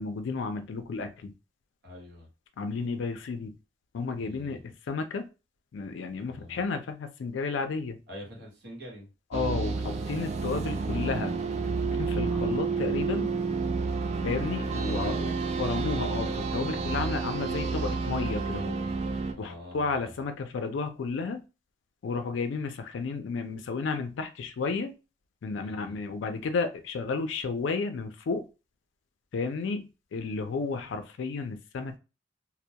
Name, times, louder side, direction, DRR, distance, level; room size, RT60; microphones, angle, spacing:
voice 1, 0.0-1.3 2.6-3.5 3.9-5.3 5.7-8.0 9.3-11.4 11.9-13.3 14.2-15.3 15.6-18.8 19.4-21.4 22.0-24.9 25.4-28.5 29.3-32.0, left 4 dB, 85° left, 0.4 m, -32 dB
voice 2, 1.8-2.3 4.2-4.6 6.3-6.6 8.1-9.1 14.0-14.4 14.8-15.4 19.4-20.1 25.6-26.0, equal, 60° right, 1.0 m, -45 dB
sound 1, 9.3-19.3, right 4 dB, 35° right, 0.3 m, -30 dB
2.2 x 2.1 x 2.7 m
head